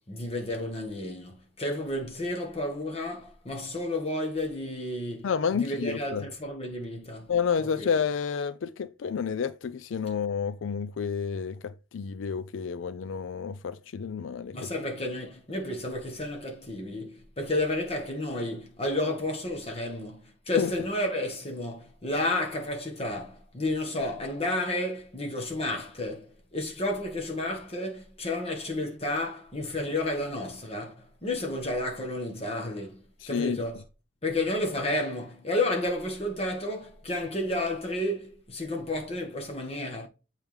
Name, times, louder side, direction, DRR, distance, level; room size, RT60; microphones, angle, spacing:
voice 1, 0.1-7.3 7.6-7.9 14.5-33.8 34.2-40.1, left 1 dB, 30° left, 1.6 m, -31 dB
voice 2, 5.2-6.3 7.3-14.7 20.6-20.7 33.2-33.6, left 6 dB, 85° left, 0.4 m, -30 dB
7.2 x 4.5 x 3.5 m
head